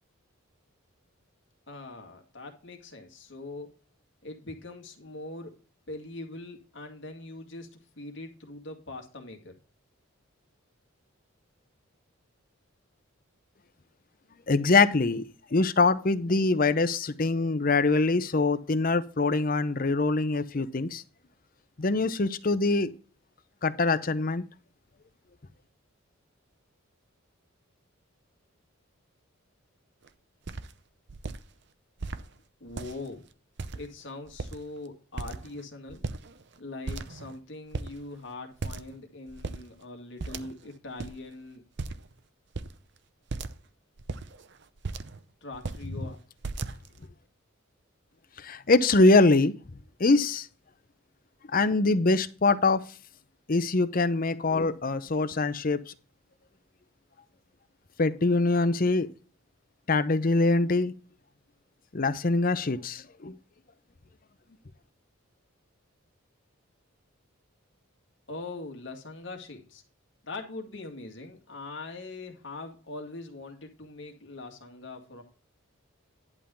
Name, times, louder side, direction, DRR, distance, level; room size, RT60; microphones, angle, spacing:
voice 1, 1.7-3.8 4.2-5.6 5.9-9.5 32.6-33.2 33.7-36.0 36.6-41.7 45.4-46.2 68.3-69.8 70.2-75.2, left 2 dB, 60° left, 4 dB, 2.1 m, -42 dB
voice 2, 14.5-15.2 15.5-21.0 21.8-22.9 23.6-24.4 48.4-49.5 50.0-50.5 51.5-52.8 53.5-55.8 58.0-59.1 59.9-60.9 61.9-63.4, left 3 dB, 40° left, 12 dB, 0.7 m, -23 dB
sound 1, 30.0-30.1 30.5-30.7 31.1-31.4 32.0-32.2 32.7-33.1 33.6-34.0 34.3-34.8 35.2-35.6 35.9-36.6 36.9-37.4 37.7-37.9 38.6-39.0 39.3-39.6 40.2-40.7 41.0-41.1 41.8-42.1 42.5-42.8 43.3-43.6 44.0-45.2 45.5-45.9 46.4-47.0, right 3 dB, 55° right, 0.7 m, -36 dB
11.0 x 3.7 x 6.9 m, 0.37 s
head